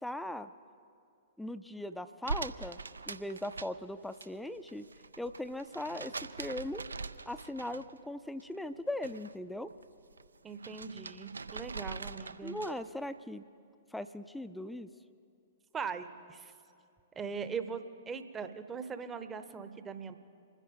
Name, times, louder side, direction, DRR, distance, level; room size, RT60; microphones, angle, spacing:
voice 1, 0.0-0.5 1.4-2.8 3.1-4.9 5.2-6.8 7.3-9.7 12.4-13.4 13.9-14.9, left 1 dB, 5° left, 12 dB, 0.4 m, -39 dB
sound 1, 2.2-4.3 4.6-8.1 8.4-9.3 9.7-12.9, right 4 dB, 75° right, 0.4 m, -43 dB
voice 2, 10.4-12.6 15.7-16.5 17.1-20.2, right 5 dB, 15° right, 10 dB, 0.8 m, -40 dB
27.5 x 10.0 x 3.7 m, 2.4 s
figure-of-eight pair, 110°, 0 cm